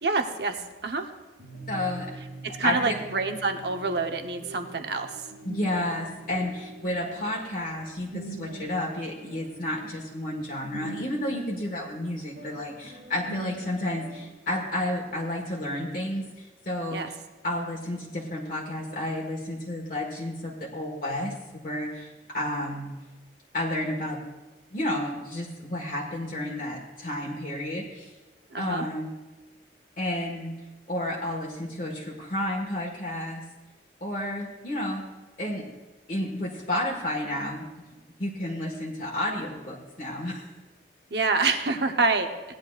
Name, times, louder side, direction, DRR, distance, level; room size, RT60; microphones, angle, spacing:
voice 1, 0.0-1.1 2.4-5.2 16.9-17.1 28.5-28.8 41.1-42.3, right 3 dB, 65° right, 5 dB, 0.9 m, -27 dB
sound 1, 1.4-14.3, right 2 dB, 85° right, 2.0 m, -44 dB
voice 2, 1.7-2.1 2.6-3.0 5.4-17.0 17.4-21.3 21.6-22.9 23.5-24.2 24.7-28.1 28.6-29.1 30.0-30.5 30.9-33.4 34.0-35.0 35.4-35.7 36.1-37.7 38.2-40.5, left 1 dB, 50° left, -3 dB, 1.5 m, -31 dB
17.5 x 10.5 x 2.4 m, 1.2 s
head